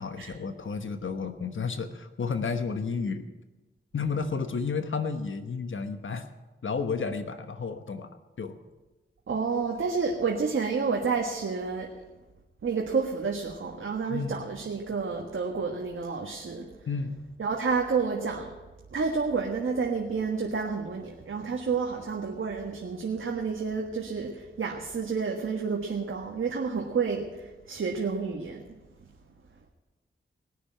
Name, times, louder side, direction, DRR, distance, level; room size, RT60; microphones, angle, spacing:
voice 1, 0.0-3.3 3.9-6.2 6.6-8.6 14.1-14.3 16.9-17.2, left 5 dB, 65° left, 8 dB, 1.2 m, -32 dB
voice 2, 9.3-11.9 12.6-16.6 17.4-18.5 18.9-28.6, right 5 dB, 70° right, 1 dB, 1.5 m, -30 dB
19.5 x 6.8 x 8.9 m, 1.1 s
wide cardioid pair, 70°, 21 cm